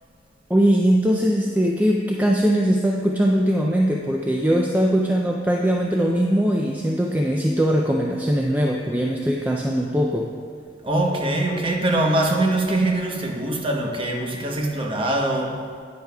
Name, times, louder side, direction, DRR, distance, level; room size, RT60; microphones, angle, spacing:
voice 1, 0.5-10.3, equal, 10° right, 0 dB, 0.3 m, -21 dB
voice 2, 10.8-15.6, right 1 dB, 30° right, 0 dB, 0.9 m, -23 dB
10.5 x 9.5 x 2.3 m, 2.1 s
head